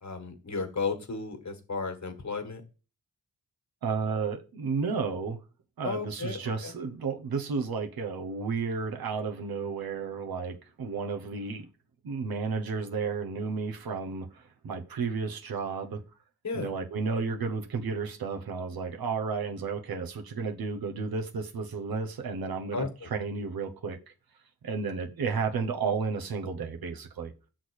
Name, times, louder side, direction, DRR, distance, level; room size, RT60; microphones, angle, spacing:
voice 1, 0.0-2.6 5.8-6.7 16.4-16.7 22.7-22.9, left 4 dB, 50° left, 1.6 m, -34 dB
voice 2, 3.8-5.4 5.8-11.6 12.0-16.0 16.5-24.0 24.6-27.3, right 5 dB, 80° right, 1.1 m, -32 dB
6.3 x 3.9 x 6.3 m
cardioid pair, 50°, 36 cm